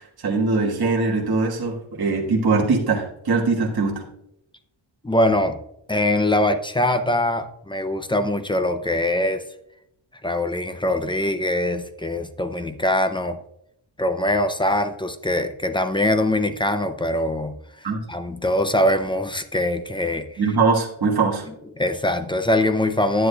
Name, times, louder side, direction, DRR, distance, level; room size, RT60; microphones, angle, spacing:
voice 1, 0.0-4.0 17.8-18.0 20.4-21.4, right 4 dB, 50° right, -1 dB, 1.4 m, -22 dB
voice 2, 5.0-5.6 5.9-9.4 10.2-13.4 14.0-17.5 18.1-20.2 21.8-23.3, left 1 dB, 10° left, 9 dB, 0.4 m, -22 dB
10.0 x 9.8 x 2.2 m, 0.78 s
wide cardioid pair, 150°, 47 cm